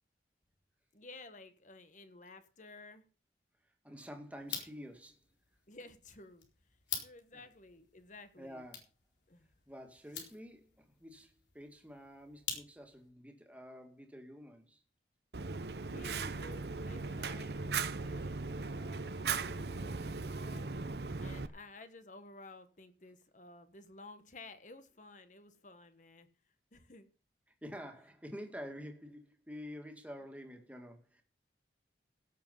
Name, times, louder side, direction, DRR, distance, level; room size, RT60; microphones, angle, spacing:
voice 1, 0.9-3.0 5.7-6.5 7.0-8.6 9.3-9.5 15.9-20.7 21.2-26.3 26.7-27.1, left 2 dB, 45° left, 1.4 m, -54 dB
voice 2, 3.8-5.2 7.3-7.4 8.4-8.8 9.7-14.8 27.6-31.2, equal, 10° right, 2.2 m, -49 dB
sound 1, 4.4-13.1, left 7 dB, 85° left, 4.4 m, -47 dB
Fire, 15.3-21.5, right 4 dB, 65° right, 0.8 m, -38 dB
17.0 x 7.4 x 5.5 m
head